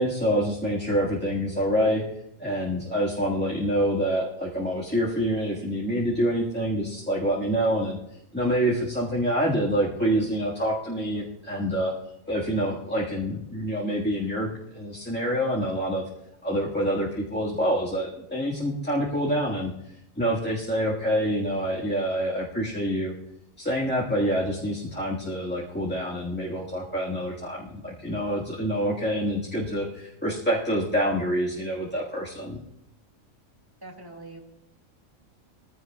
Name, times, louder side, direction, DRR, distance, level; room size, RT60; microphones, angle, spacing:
voice 1, 0.0-2.0 2.4-8.0 8.3-11.9 12.3-16.0 16.4-19.7 20.1-23.1 23.6-32.6, equal, 10° left, -6 dB, 1.6 m, -26 dB
voice 2, 33.8-34.4, right 2 dB, 15° right, 1 dB, 2.1 m, -42 dB
20.5 x 15.5 x 2.4 m, 0.82 s
omnidirectional pair, 1.5 m